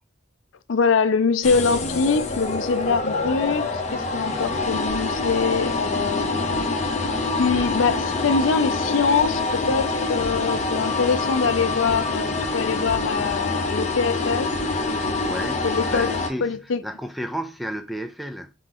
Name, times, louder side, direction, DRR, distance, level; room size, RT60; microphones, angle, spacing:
voice 1, 0.7-6.3 7.4-14.5 15.6-16.1 16.4-16.8, left 5 dB, 80° left, 0.5 m, -23 dB
sound 1, 1.4-16.3, left 3 dB, 35° left, 0.7 m, -26 dB
sound 2, 4.9-5.3 6.5-6.7 7.0-7.1 7.5-8.0 9.2-9.4 9.7-9.8 10.2-10.6 11.9-12.1 12.4-12.5 12.9-13.3 14.5-14.7 15.0-15.1, right 3 dB, 65° right, 0.6 m, -39 dB
voice 2, 15.2-18.5, equal, ahead, 0.3 m, -33 dB
4.0 x 2.9 x 3.8 m
head